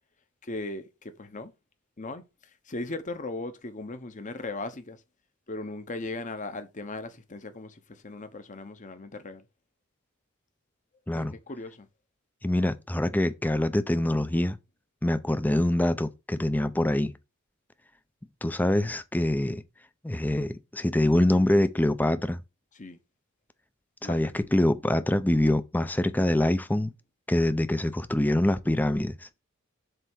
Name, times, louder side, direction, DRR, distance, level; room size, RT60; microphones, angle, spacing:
voice 1, 0.4-1.5 2.0-2.2 2.7-5.0 5.5-9.4 11.1-11.9 22.7-23.0 24.0-24.3, left 2 dB, 35° left, 1.0 m, -38 dB
voice 2, 12.4-14.6 15.0-17.1 18.4-19.6 20.0-22.4 24.0-26.9 27.3-29.2, left 1 dB, 10° left, 0.5 m, -25 dB
7.8 x 3.4 x 6.2 m
head